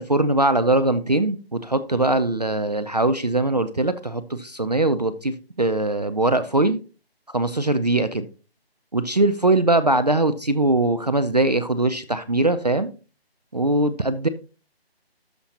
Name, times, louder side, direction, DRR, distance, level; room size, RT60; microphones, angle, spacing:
voice 1, 0.0-6.8 7.3-8.3 8.9-12.9 13.5-14.3, right 2 dB, 40° right, 0.4 m, -21 dB
13.0 x 5.1 x 2.8 m
figure-of-eight pair, 170°, 31 cm